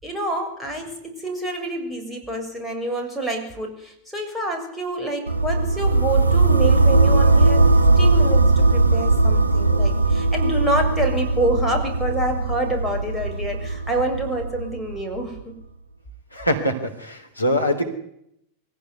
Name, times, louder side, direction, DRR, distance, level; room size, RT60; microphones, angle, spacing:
voice 1, 0.0-15.5, right 1 dB, 5° right, 1 dB, 6.9 m, -27 dB
sound 1, 5.3-15.2, right 2 dB, 80° right, 1.0 m, -19 dB
voice 2, 16.3-17.8, equal, 85° left, 4 dB, 3.3 m, -23 dB
23.5 x 16.0 x 9.6 m, 0.75 s
figure-of-eight pair, 90°, 0 cm